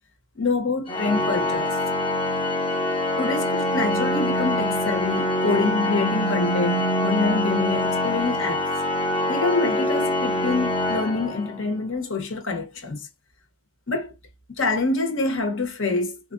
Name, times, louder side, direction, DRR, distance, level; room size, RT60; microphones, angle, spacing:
voice 1, 0.3-1.8 3.2-8.7 9.3-13.1 13.9-14.1 14.5-16.3, left 3 dB, 60° left, 1.4 m, -26 dB
Organ, 0.9-11.8, left 1 dB, 25° left, 0.8 m, -24 dB
4.8 x 2.5 x 2.6 m
head